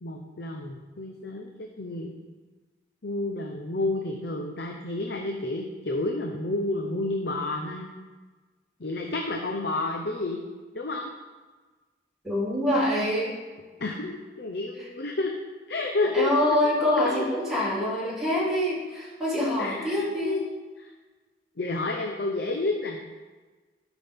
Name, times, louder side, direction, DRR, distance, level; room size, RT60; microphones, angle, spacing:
voice 1, 0.0-2.2 3.0-7.9 8.8-10.4 10.7-11.1 13.8-15.3 15.7-16.3 17.1-17.3 19.6-20.5 20.8-20.9 21.6-23.0, left 2 dB, 65° left, 2 dB, 0.7 m, -30 dB
voice 2, 12.2-13.3 16.1-20.4, left 1 dB, 5° right, -9 dB, 3.1 m, -25 dB
12.5 x 6.1 x 3.6 m, 1.3 s
head